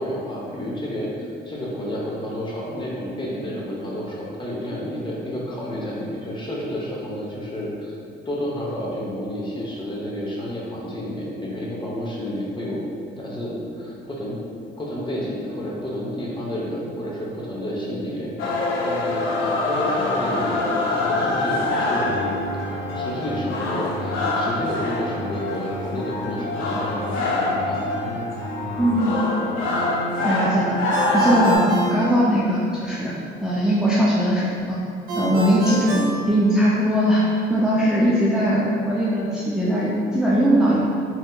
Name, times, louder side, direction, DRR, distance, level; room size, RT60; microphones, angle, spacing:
voice 1, 0.0-8.0 8.3-12.8 13.1-14.4 14.8-22.3 22.9-27.9, equal, 25° left, -4 dB, 0.7 m, -30 dB
sound 1, 18.4-31.6, left 2 dB, 80° left, 0.5 m, -24 dB
voice 2, 28.8-29.2 30.2-33.1 33.4-34.8 35.2-37.2 37.5-40.8, equal, 5° right, -7 dB, 0.3 m, -20 dB
Ringtone, 30.9-32.8 35.1-37.0, right 2 dB, 45° right, 0.6 m, -30 dB
3.3 x 2.7 x 2.2 m, 2.4 s
cardioid pair, 90°, 20 cm